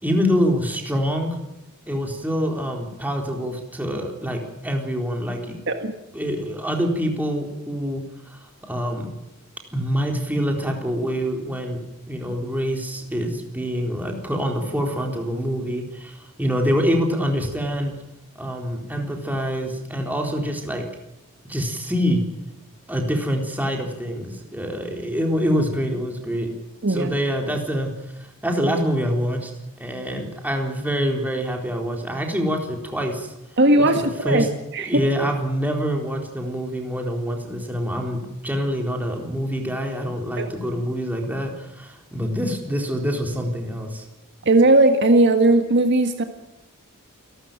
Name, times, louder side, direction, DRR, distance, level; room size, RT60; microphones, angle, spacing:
voice 1, 0.0-1.4 1.9-5.6 6.1-8.0 8.3-8.4 8.7-9.1 9.7-17.9 18.4-20.9 21.5-22.2 22.9-26.5 26.9-27.9 28.4-29.5 29.8-33.3 33.8-34.0 34.2-34.5 34.8-44.0, equal, 10° right, 2 dB, 4.0 m, -25 dB
voice 2, 33.6-34.4 34.7-35.0 40.4-40.5 44.5-46.2, right 2 dB, 55° right, 6 dB, 1.8 m, -17 dB
28.5 x 12.5 x 9.2 m, 0.92 s
head